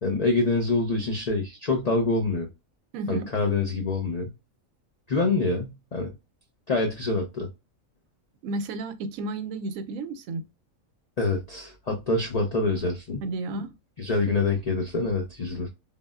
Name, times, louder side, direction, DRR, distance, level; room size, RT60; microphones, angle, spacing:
voice 1, 0.0-2.5 3.1-4.3 5.1-6.1 6.7-7.5 11.2-13.2 14.0-15.7, left 3 dB, 60° left, 0.4 m, -26 dB
voice 2, 2.9-3.3 8.4-10.4 13.2-13.7, right 2 dB, 85° right, 1.0 m, -32 dB
3.6 x 2.1 x 2.3 m
omnidirectional pair, 1.4 m